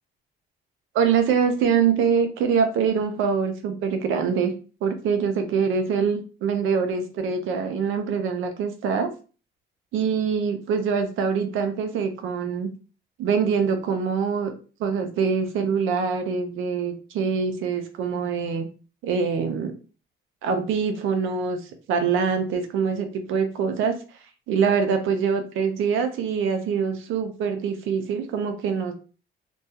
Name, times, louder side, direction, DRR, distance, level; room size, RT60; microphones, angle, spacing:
voice 1, 0.9-4.5 4.8-9.1 9.9-12.7 13.2-14.5 14.8-18.7 19.0-19.7 20.4-21.6 21.9-23.9 24.5-28.9, right 6 dB, 80° right, 6 dB, 0.5 m, -24 dB
2.2 x 2.2 x 2.7 m, 0.37 s
cardioid pair, 90°, 20 cm